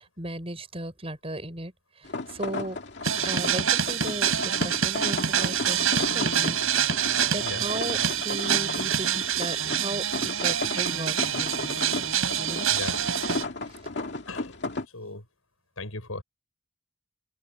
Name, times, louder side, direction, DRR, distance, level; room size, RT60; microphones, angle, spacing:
voice 1, 0.0-1.7 2.3-2.8 3.2-6.6 7.3-8.0 8.2-10.0 10.4-11.8 12.4-12.6, right 1 dB, 25° right, 6.3 m, -36 dB
sound 1, 2.0-14.9, left 2 dB, 55° left, 2.3 m, -34 dB
sound 2, 3.0-13.4, right 9 dB, 85° right, 5.2 m, -26 dB
voice 2, 12.7-13.0 14.3-14.6 14.9-15.2 15.8-16.2, left 3 dB, 85° left, 6.9 m, -37 dB
open air
head